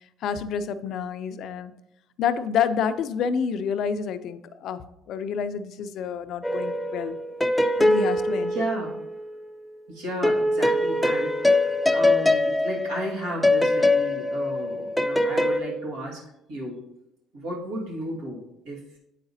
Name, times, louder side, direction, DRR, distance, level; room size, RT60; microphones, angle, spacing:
voice 1, 0.2-1.7 2.2-7.2 7.8-8.6, left 7 dB, 65° left, 12 dB, 0.4 m, -28 dB
sound 1, 6.4-9.3 10.2-15.6, left 1 dB, 5° left, 0.4 m, -23 dB
voice 2, 8.4-9.0 9.9-16.2 16.5-16.8 17.3-18.4 18.7-18.8, right 1 dB, 85° right, -3 dB, 1.7 m, -33 dB
7.8 x 4.9 x 2.7 m, 0.85 s
supercardioid pair, 85°, 0 cm